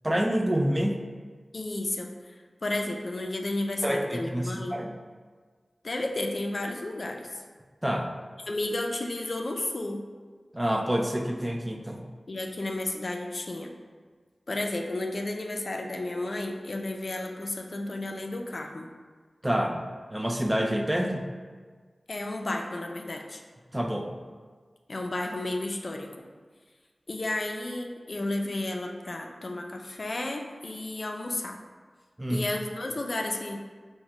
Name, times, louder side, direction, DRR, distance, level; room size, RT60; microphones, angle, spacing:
voice 1, 0.0-1.0 3.8-4.9 7.8-8.2 10.5-12.0 19.4-21.3 23.7-24.1 32.2-32.5, equal, 15° right, 3 dB, 0.3 m, -27 dB
voice 2, 1.5-4.8 5.8-7.4 8.5-10.0 12.3-13.7 14.5-18.9 22.1-23.4 24.9-26.1 27.1-31.6 32.3-33.6, left 2 dB, 60° left, 2 dB, 0.4 m, -32 dB
4.9 x 2.1 x 3.0 m, 1.5 s
wide cardioid pair, 60°, 0 cm